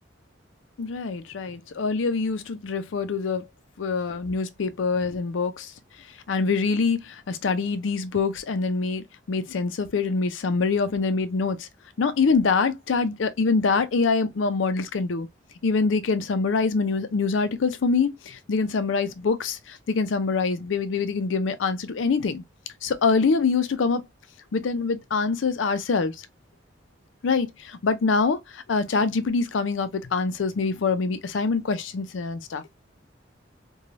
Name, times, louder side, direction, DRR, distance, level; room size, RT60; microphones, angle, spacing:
voice 1, 0.8-3.5 3.8-5.7 6.3-11.7 12.0-15.3 15.6-22.4 22.8-24.0 24.5-26.1 27.2-32.6, left 4 dB, 85° left, 0.5 m, -25 dB
3.1 x 2.2 x 2.5 m
head